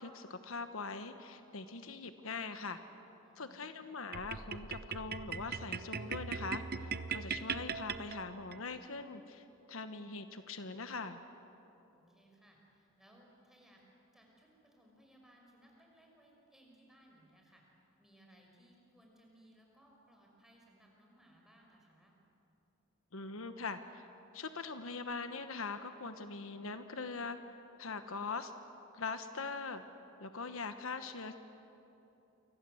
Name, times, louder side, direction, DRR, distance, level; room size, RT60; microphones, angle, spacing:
voice 1, 0.0-2.8 3.4-11.2 23.1-24.1 24.3-27.4 27.8-28.5 28.9-29.8 30.2-31.3, left 4 dB, 75° left, 9 dB, 1.2 m, -42 dB
voice 2, 3.2-3.8 11.9-13.8 14.1-17.6 18.0-22.1, right 1 dB, ahead, -1 dB, 5.7 m, -64 dB
sound 1, 4.1-8.6, right 5 dB, 50° right, 0.9 m, -40 dB
29.0 x 25.0 x 7.9 m, 3.0 s
head